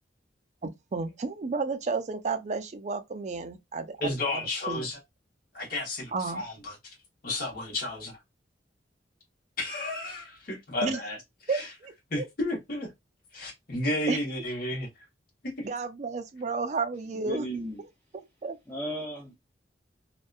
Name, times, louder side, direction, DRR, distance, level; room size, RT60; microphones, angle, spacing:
voice 1, 0.6-4.4 4.7-4.9 6.1-6.4 10.8-11.0 11.5-12.3 14.1-14.2 15.6-17.4 18.4-18.6, right 4 dB, 40° right, 0.4 m, -32 dB
voice 2, 4.0-5.0 5.5-6.7 7.2-8.2 9.6-11.2 11.5-11.7 12.1-12.9 13.3-14.9 15.4-15.7, left 1 dB, 55° left, 1.0 m, -32 dB
voice 3, 17.1-17.8 18.7-19.3, right 1 dB, 10° left, 0.5 m, -35 dB
2.6 x 2.2 x 2.3 m
head